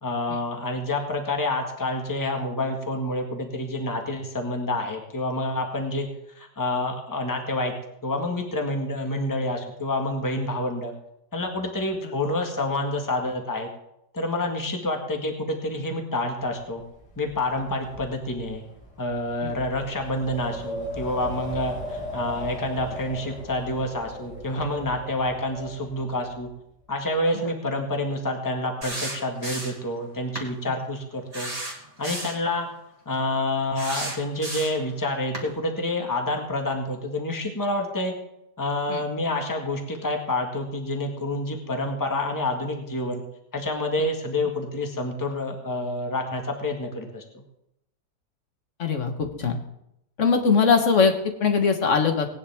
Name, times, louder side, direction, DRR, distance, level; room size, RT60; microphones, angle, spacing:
voice 1, 0.0-6.1 6.3-7.7 8.0-10.9 11.3-13.7 14.1-16.8 17.2-18.6 19.0-26.5 26.9-31.5 32.0-32.7 33.0-38.1 38.6-43.2 43.5-47.2, left 1 dB, 10° left, 3 dB, 1.5 m, -28 dB
Wind, 16.4-26.5, left 1 dB, 80° left, 3.1 m, -38 dB
sound 1, 28.8-29.9 30.3-30.5 31.3-32.4 33.7-34.9 35.3-35.5, right 1 dB, 20° right, 2.3 m, -33 dB
voice 2, 48.8-49.6 50.2-52.3, left 5 dB, 45° left, 5 dB, 1.7 m, -21 dB
18.5 x 10.0 x 3.6 m, 0.80 s
omnidirectional pair, 1.8 m